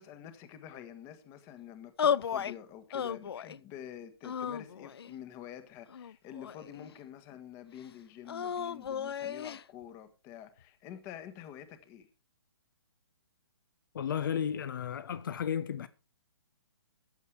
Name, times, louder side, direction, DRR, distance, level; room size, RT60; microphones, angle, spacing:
voice 1, 0.0-12.1, left 10 dB, 20° left, 1.5 m, -48 dB
sound 1, 2.0-2.6 2.9-3.6 4.2-5.1 5.9-6.9 8.3-9.6, left 8 dB, 70° left, 0.6 m, -34 dB
voice 2, 13.9-15.9, left 8 dB, 55° left, 1.2 m, -33 dB
15.0 x 9.7 x 4.9 m
hypercardioid pair, 160°, 13 cm